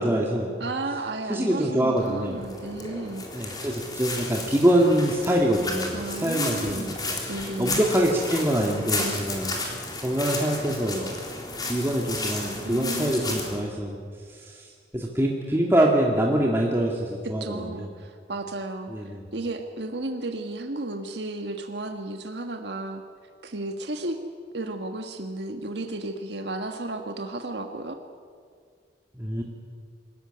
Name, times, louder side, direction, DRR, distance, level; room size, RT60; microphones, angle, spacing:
voice 1, 0.0-0.5 1.3-2.4 3.3-6.9 7.6-9.5 10.0-11.1 11.6-14.0 14.3-17.9 18.9-19.2 29.1-29.4, right 1 dB, 15° right, -2 dB, 2.0 m, -24 dB
voice 2, 0.6-3.3 5.9-6.9 7.3-7.9 9.0-9.3 12.6-13.4 17.4-23.0 23.4-24.2 24.5-28.0, right 2 dB, 80° right, 5 dB, 1.5 m, -33 dB
footsteps on leaves, 2.0-13.6, left 2 dB, 25° left, 3.5 m, -33 dB
25.0 x 14.5 x 9.9 m, 2.1 s
head